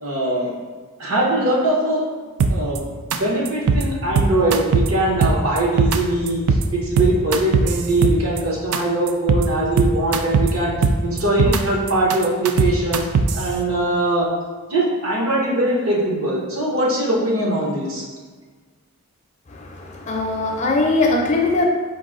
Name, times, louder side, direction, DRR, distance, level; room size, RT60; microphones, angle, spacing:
voice 1, 0.0-0.5 1.0-2.0 2.5-2.8 3.1-10.7 11.0-13.1 13.3-14.3 14.7-18.0, right 1 dB, 65° right, -3 dB, 1.0 m, -21 dB
sound 1, 2.4-2.8 3.1-3.2 3.5-3.8 4.2-4.9 5.2-6.0 6.3-6.6 7.0-8.4 8.7-8.8 9.1-9.4 9.8-10.5 10.8-11.6 11.9-13.4, right 4 dB, 80° right, 0.4 m, -18 dB
voice 2, 19.5-21.6, left 2 dB, 30° left, 0 dB, 0.5 m, -21 dB
4.6 x 2.6 x 3.7 m, 1.4 s
head